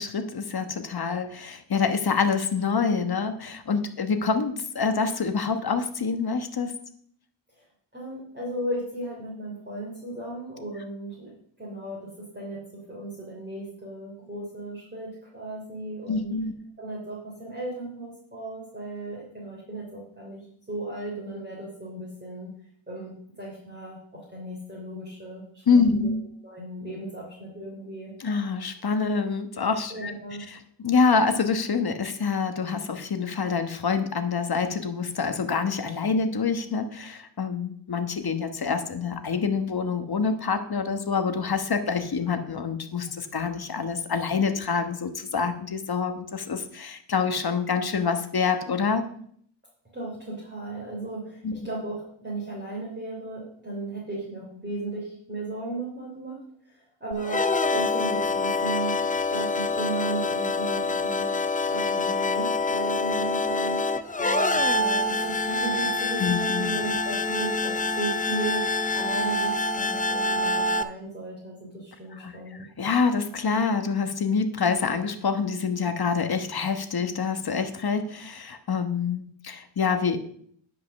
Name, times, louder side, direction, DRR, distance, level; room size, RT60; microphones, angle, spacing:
voice 1, 0.0-6.7 16.1-16.5 25.7-26.2 28.2-30.1 30.5-49.1 51.4-51.6 66.2-66.7 72.2-72.3 72.8-80.2, left 5 dB, 50° left, 7 dB, 1.2 m, -26 dB
voice 2, 7.9-11.3 11.6-12.6 12.9-16.3 16.8-22.5 22.9-25.6 25.9-26.1 26.4-28.1 29.9-30.4 49.9-56.4 56.7-58.9 59.3-61.3 61.7-63.9 64.2-68.6 68.9-72.7, right 2 dB, 20° right, -5 dB, 3.2 m, -36 dB
sound 1, 57.1-70.8, left 2 dB, 15° left, 0.5 m, -26 dB
10.5 x 5.4 x 6.4 m, 0.64 s
wide cardioid pair, 110°, 48 cm